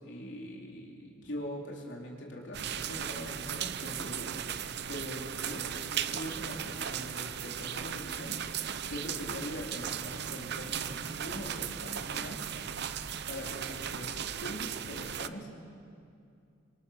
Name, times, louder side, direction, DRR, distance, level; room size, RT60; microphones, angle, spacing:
voice 1, 0.0-4.6 4.9-8.4 8.9-12.4 13.3-15.5, equal, 65° left, -1 dB, 3.9 m, -42 dB
sound 1, 2.5-15.3, right 8 dB, 55° right, 0.7 m, -37 dB
26.5 x 22.5 x 6.6 m, 2.4 s
head